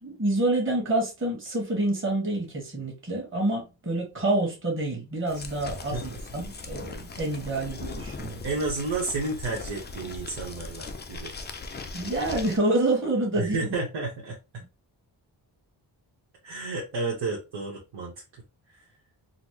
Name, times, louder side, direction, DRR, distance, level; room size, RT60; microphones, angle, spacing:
voice 1, 0.0-8.4 11.9-13.7, right 2 dB, 25° right, 1.4 m, -27 dB
sound 1, 5.3-12.6, left 3 dB, 25° left, 0.4 m, -39 dB
voice 2, 8.4-11.3 13.4-14.6 16.4-18.1, right 3 dB, 85° right, 1.1 m, -31 dB
3.9 x 2.1 x 3.0 m
wide cardioid pair, 120°, 45 cm